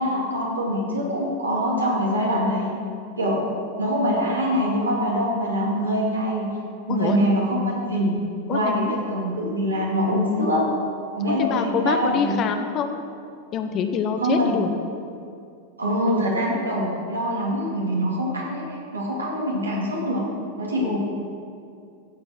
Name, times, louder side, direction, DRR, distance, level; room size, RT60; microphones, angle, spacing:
voice 1, 0.0-2.7 3.2-3.4 3.8-6.5 6.9-8.1 8.5-10.6 11.1-12.4 14.2-14.6 15.8-18.6 18.9-20.2 20.6-21.0, equal, 80° right, -4 dB, 2.8 m, -24 dB
voice 2, 8.5-9.0 11.4-13.0 13.5-14.7 20.8-21.0, left 6 dB, 35° left, 7 dB, 0.9 m, -25 dB
15.5 x 7.4 x 4.6 m, 2.4 s
figure-of-eight pair, 90°, 0 cm